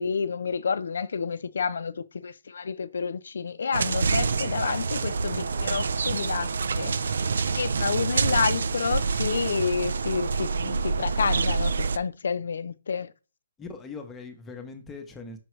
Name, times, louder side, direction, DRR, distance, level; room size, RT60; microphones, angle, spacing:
voice 1, 0.0-7.0 7.5-13.1, left 5 dB, 65° left, 0.6 m, -29 dB
sound 1, 3.7-12.0, right 4 dB, 65° right, 0.4 m, -27 dB
voice 2, 13.6-15.4, left 4 dB, 10° left, 0.8 m, -42 dB
6.1 x 5.7 x 3.2 m
hypercardioid pair, 175°, 0 cm